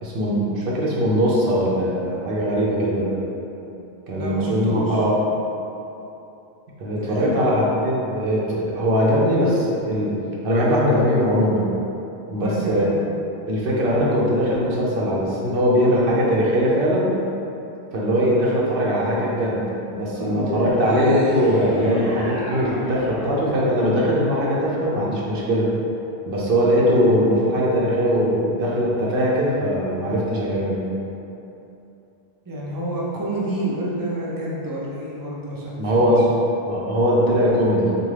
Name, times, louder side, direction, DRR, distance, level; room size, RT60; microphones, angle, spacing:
voice 1, 0.0-3.2 4.1-5.1 6.8-10.1 10.4-11.7 12.3-12.8 13.5-17.1 17.9-25.7 26.3-30.8 35.8-36.3 36.6-37.9, equal, 60° right, -5 dB, 0.7 m, -20 dB
voice 2, 4.1-5.0 7.0-7.4 12.3-13.0 18.3-18.4 20.2-20.4 32.5-36.1, right 1 dB, 35° right, -5 dB, 0.3 m, -29 dB
sound 1, 20.1-24.6, equal, 15° right, 0.7 m, -31 dB
3.6 x 2.4 x 3.2 m, 2.9 s
omnidirectional pair, 1.1 m